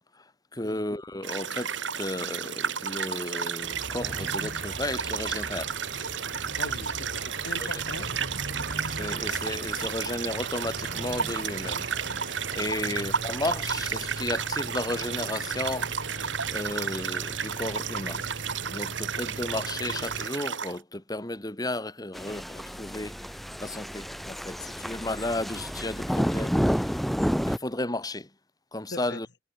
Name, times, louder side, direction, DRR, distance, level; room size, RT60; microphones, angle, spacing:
voice 1, 0.1-5.8 7.6-7.8 8.8-11.9 12.5-15.9 16.5-18.3 18.7-28.3 28.7-29.3, left 2 dB, 20° left, 2.2 m, -34 dB
sound 1, 1.2-20.8, right 7 dB, 85° right, 2.3 m, -32 dB
sound 2, 3.6-20.3, right 2 dB, 50° right, 6.1 m, -39 dB
voice 2, 6.6-8.1 12.8-12.9 28.9-29.2, left 2 dB, 65° left, 1.8 m, -40 dB
sound 3, 22.1-27.6, equal, ahead, 0.7 m, -30 dB
head